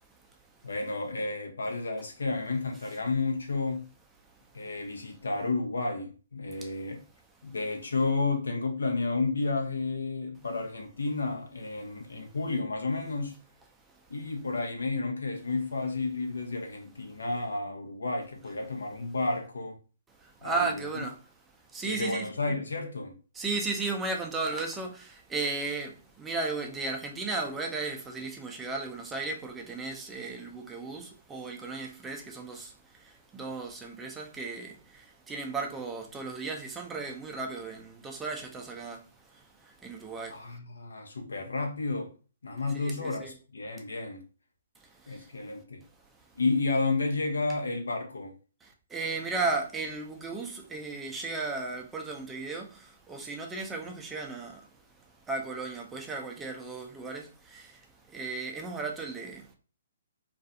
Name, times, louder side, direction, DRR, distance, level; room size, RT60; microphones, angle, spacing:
voice 1, 0.1-0.7 4.2-4.6 6.6-6.7 12.2-12.3 13.9-14.0 20.2-21.2 21.5-22.6 23.3-40.5 42.7-43.3 44.8-45.3 48.6-59.5, right 3 dB, 10° right, 0.5 m, -36 dB
voice 2, 0.6-3.9 4.5-7.0 7.4-13.3 14.1-19.8 20.4-20.7 21.8-23.1 40.3-42.1 42.4-44.2 45.1-45.8 46.4-48.3, left 3 dB, 85° left, 0.7 m, -31 dB
2.4 x 2.3 x 2.6 m
hypercardioid pair, 135°, 0 cm